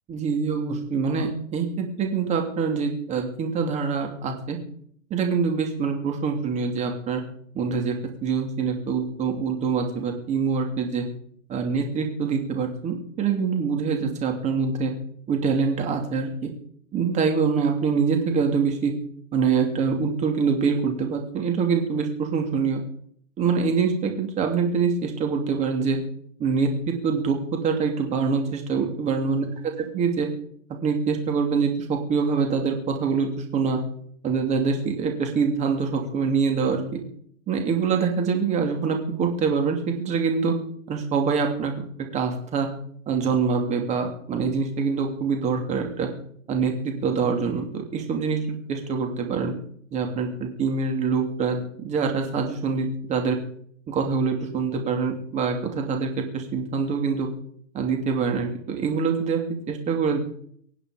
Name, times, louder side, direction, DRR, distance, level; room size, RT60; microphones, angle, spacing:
voice 1, 0.1-4.6 5.1-7.2 7.5-7.9 8.2-11.0 11.5-14.9 15.3-16.5 16.9-18.9 19.3-22.8 23.4-26.0 26.4-29.4 29.8-30.3 30.7-33.8 34.2-37.0 37.5-40.6 40.9-41.7 42.1-42.7 43.1-46.1 46.5-49.5 49.9-53.4 53.9-57.3 57.7-59.4 59.7-60.2, right 5 dB, 15° right, 3 dB, 2.7 m, -25 dB
24.0 x 8.9 x 5.1 m, 0.64 s
hypercardioid pair, 145°, 41 cm